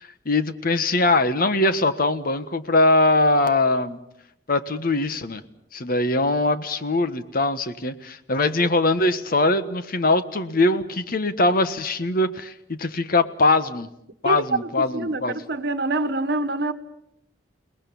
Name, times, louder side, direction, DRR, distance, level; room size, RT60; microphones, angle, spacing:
voice 1, 0.0-4.0 4.5-5.4 5.7-13.9 14.2-15.4, left 2 dB, 55° left, 1.3 m, -22 dB
voice 2, 14.2-16.7, right 2 dB, 65° right, 1.4 m, -26 dB
29.5 x 19.5 x 7.1 m
head